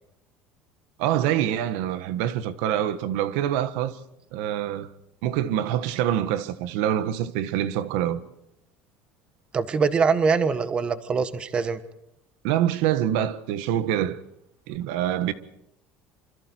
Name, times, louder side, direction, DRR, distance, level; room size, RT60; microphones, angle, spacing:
voice 1, 1.0-4.0 4.3-4.9 5.2-8.2 12.4-14.2 14.7-15.3, right 11 dB, 85° right, 1.5 m, -25 dB
voice 2, 9.5-11.8, right 5 dB, 25° right, 1.3 m, -23 dB
26.5 x 26.5 x 4.6 m
cardioid pair, 160°, 4 cm